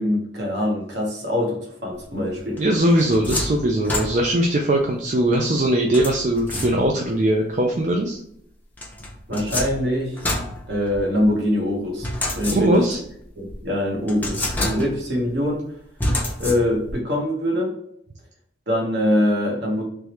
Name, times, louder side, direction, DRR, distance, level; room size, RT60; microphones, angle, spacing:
voice 1, 0.0-2.6 9.3-10.2 10.7-12.1 12.4-12.7 13.4-15.6 16.4-17.7 18.7-19.9, left 1 dB, 60° right, -1 dB, 1.2 m, -23 dB
sound 1, 2.6-4.5 5.9-7.1 8.8-11.3 12.0-13.0 13.5-13.6 14.1-15.2 16.0-17.0, left 1 dB, 10° left, 0.6 m, -28 dB
voice 2, 2.6-8.2 12.5-13.0, right 1 dB, 40° right, 1 dB, 0.4 m, -20 dB
3.5 x 3.1 x 3.0 m, 0.72 s
head